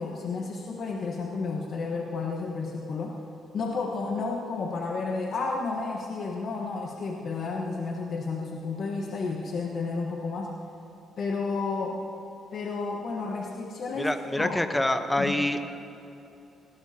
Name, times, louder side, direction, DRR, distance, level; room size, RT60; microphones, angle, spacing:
voice 1, 0.0-3.2 3.5-10.5 11.2-12.0 12.5-14.6 15.2-15.3, left 4 dB, 60° left, -1 dB, 1.2 m, -31 dB
voice 2, 14.0-15.6, left 1 dB, 10° left, 8 dB, 0.9 m, -26 dB
18.5 x 17.5 x 2.8 m, 3.0 s
cardioid pair, 90°, 0 cm